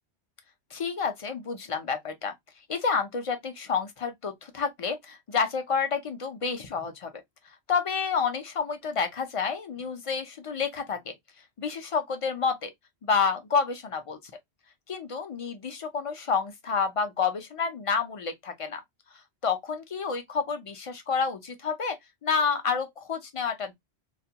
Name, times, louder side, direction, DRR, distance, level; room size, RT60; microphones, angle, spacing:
voice 1, 0.7-2.3 2.7-7.2 7.7-11.1 11.6-12.7 13.0-14.2 14.9-18.8 19.4-22.0 22.2-23.7, left 5 dB, 50° left, 0.4 m, -29 dB
2.3 x 2.2 x 2.7 m
omnidirectional pair, 1.1 m